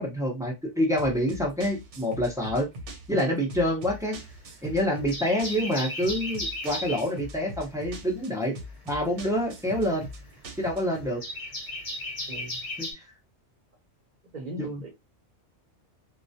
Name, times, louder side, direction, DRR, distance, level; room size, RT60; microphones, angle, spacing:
voice 1, 0.0-2.7 3.1-4.2 4.6-8.6 8.9-10.1 10.6-11.2 12.8-13.0 14.6-14.8, equal, 5° right, 0.4 m, -27 dB
sound 1, 1.0-11.1, equal, 80° right, 1.0 m, -42 dB
sound 2, 3.9-4.6 4.9-7.1 8.7-12.9, left 1 dB, 40° left, 0.6 m, -36 dB
voice 2, 12.3-12.6 14.3-14.9, equal, 45° right, 0.8 m, -38 dB
2.3 x 2.0 x 2.6 m
omnidirectional pair, 1.2 m